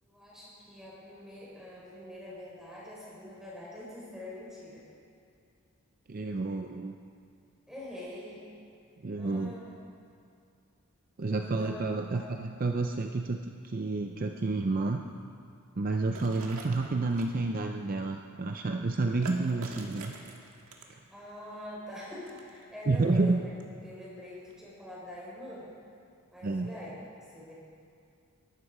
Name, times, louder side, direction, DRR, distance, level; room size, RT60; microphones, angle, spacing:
voice 1, 0.0-4.8 7.7-8.4 9.2-9.7 11.4-11.8 12.1-12.2 21.1-23.3 23.8-25.7 26.3-26.9 27.3-27.5, left 1 dB, ahead, -7 dB, 4.9 m, -44 dB
voice 2, 6.1-7.0 9.0-9.5 11.2-15.0 15.8-20.1 20.9-21.0 22.9-23.4 26.4-26.7, right 3 dB, 40° right, 4 dB, 0.5 m, -30 dB
sound 1, 16.2-17.4 19.2-21.1 22.0-22.6 23.6-23.7 24.5-24.6, right 3 dB, 75° right, 1.7 m, -45 dB
21.0 x 12.0 x 4.8 m, 2.4 s
head